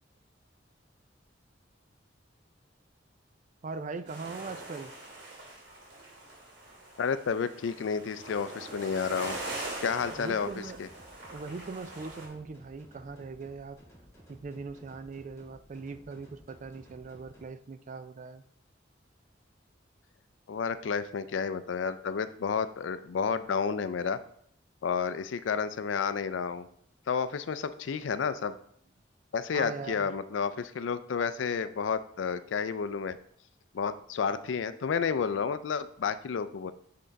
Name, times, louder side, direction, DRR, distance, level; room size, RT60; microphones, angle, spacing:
voice 1, 3.6-4.9 10.1-10.8 11.3-13.8 14.3-18.4 29.5-30.1, right 4 dB, 40° right, 12 dB, 0.4 m, -40 dB
sound 1, 4.1-12.3, right 2 dB, 65° right, 2.5 m, -42 dB
voice 2, 7.0-9.4 9.8-10.5 10.8-10.9 20.5-24.2 24.8-26.7 27.1-28.5 29.3-33.2 33.7-36.7, left 6 dB, 80° left, 13 dB, 0.4 m, -31 dB
sound 2, 9.2-17.4, equal, 15° left, 1.6 m, -56 dB
7.8 x 3.7 x 4.0 m, 0.66 s
head